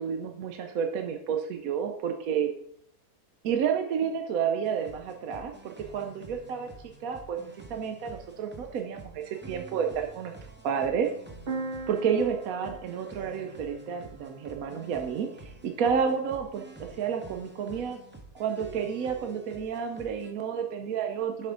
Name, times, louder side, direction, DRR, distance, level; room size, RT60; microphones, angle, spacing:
voice 1, 0.0-2.5 3.4-6.7 7.0-7.4 7.7-11.1 11.9-18.0 18.3-21.5, right 7 dB, 70° right, 5 dB, 1.1 m, -30 dB
sound 1, 4.6-20.3, right 2 dB, 10° right, 0.6 m, -49 dB
sound 2, 11.5-15.2, right 3 dB, 45° right, 1.1 m, -40 dB
7.3 x 5.6 x 3.8 m, 0.70 s
omnidirectional pair, 1.6 m